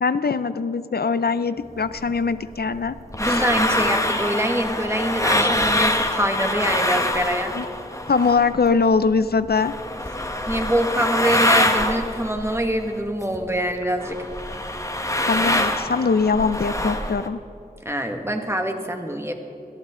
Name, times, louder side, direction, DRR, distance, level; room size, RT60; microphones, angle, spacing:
voice 1, 0.0-3.0 3.2-3.4 7.6-7.7 8.1-9.7 15.3-17.4, left 4 dB, 85° left, 13 dB, 0.5 m, -22 dB
sound 1, 2.0-8.7 8.9-13.5 13.8-17.3, left 1 dB, 20° left, 1.1 m, -24 dB
voice 2, 3.2-7.5 10.5-14.3 17.9-19.3, right 1 dB, 15° right, 4 dB, 1.7 m, -24 dB
22.0 x 14.0 x 3.8 m, 2.7 s
wide cardioid pair, 45°, 16 cm